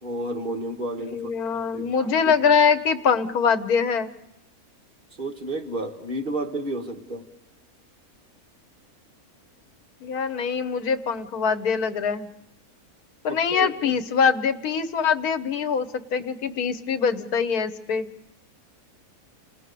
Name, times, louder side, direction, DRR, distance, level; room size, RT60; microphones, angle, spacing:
voice 1, 0.0-2.3 5.2-7.3 13.3-13.9, right 1 dB, 35° right, 2 dB, 1.8 m, -32 dB
voice 2, 1.0-4.1 10.0-12.3 13.2-18.1, left 6 dB, 85° left, 11 dB, 1.5 m, -23 dB
28.5 x 18.5 x 6.8 m, 0.94 s
omnidirectional pair, 1.6 m